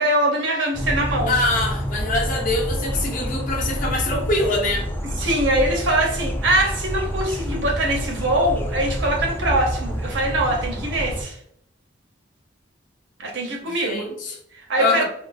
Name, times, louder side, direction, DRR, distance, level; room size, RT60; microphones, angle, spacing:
voice 1, 0.0-1.3 5.2-11.4 13.2-14.1 14.5-15.0, right 1 dB, 70° right, 1 dB, 0.8 m, -22 dB
sound 1, 0.7-11.2, equal, 10° left, 0.3 m, -28 dB
voice 2, 1.3-4.9 13.6-14.4 14.8-15.0, left 2 dB, 45° left, 0 dB, 0.8 m, -24 dB
3.6 x 2.0 x 2.5 m, 0.69 s
head